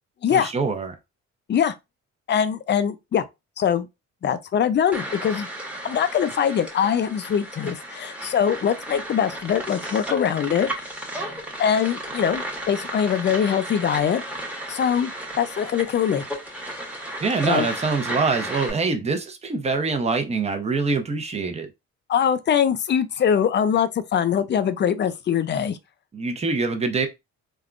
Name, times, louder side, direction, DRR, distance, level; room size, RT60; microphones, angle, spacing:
voice 1, 0.3-0.9 17.2-21.7 26.1-27.1, right 4 dB, 20° right, 0.6 m, -24 dB
voice 2, 2.3-3.2 3.6-3.9 4.2-5.5 5.8-10.9 11.6-14.4 14.7-15.1 15.4-16.3 17.5-17.7 22.1-25.8, left 8 dB, 35° left, 0.4 m, -22 dB
sound 1, 4.9-18.7, right 1 dB, 5° right, 1.0 m, -34 dB
3.5 x 2.2 x 2.4 m
cardioid pair, 90°, 30 cm